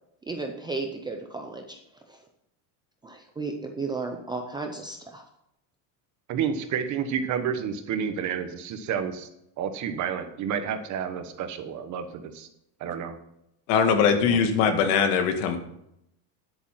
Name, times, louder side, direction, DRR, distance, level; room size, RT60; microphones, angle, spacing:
voice 1, 0.3-1.8 2.1-2.2 3.0-5.2, right 3 dB, 10° right, 3 dB, 0.5 m, -34 dB
voice 2, 6.3-9.3 9.6-12.5 12.8-13.2 14.3-14.4, right 7 dB, 35° right, 8 dB, 1.2 m, -30 dB
voice 3, 13.7-15.6, left 6 dB, 80° left, 7 dB, 2.0 m, -21 dB
10.5 x 8.6 x 5.7 m, 0.79 s
cardioid pair, 170°, 47 cm